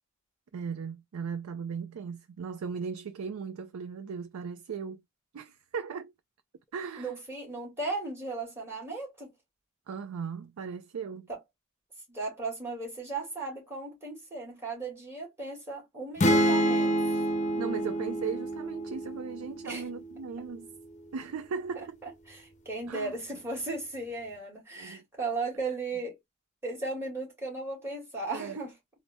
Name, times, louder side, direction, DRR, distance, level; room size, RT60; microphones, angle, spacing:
voice 1, 0.5-5.0 5.3-6.1 6.7-7.1 9.9-11.3 17.6-20.7 21.1-22.0 22.9-23.2 24.8-25.0 28.3-28.6, right 6 dB, 85° right, 0.4 m, -37 dB
voice 2, 7.0-9.3 11.3-11.4 12.1-17.2 19.6-19.8 22.3-26.2 26.6-28.7, right 3 dB, 10° right, 2.1 m, -36 dB
sound 1, 16.2-19.9, right 1 dB, 35° left, 0.6 m, -27 dB
3.9 x 2.0 x 3.5 m
head